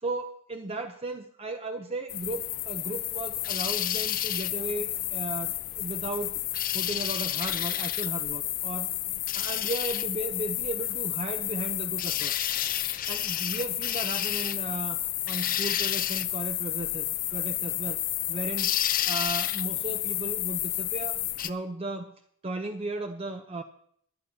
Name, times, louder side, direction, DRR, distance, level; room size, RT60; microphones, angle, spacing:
voice 1, 0.0-6.4 6.7-8.9 9.3-12.3 13.1-15.0 15.3-18.0 18.3-18.7 19.0-21.2 21.4-22.1 22.4-23.6, right 2 dB, 25° right, 5 dB, 0.5 m, -35 dB
sound 1, 2.1-21.5, left 13 dB, 40° left, 0.4 m, -30 dB
20.5 x 11.0 x 2.8 m, 0.65 s
head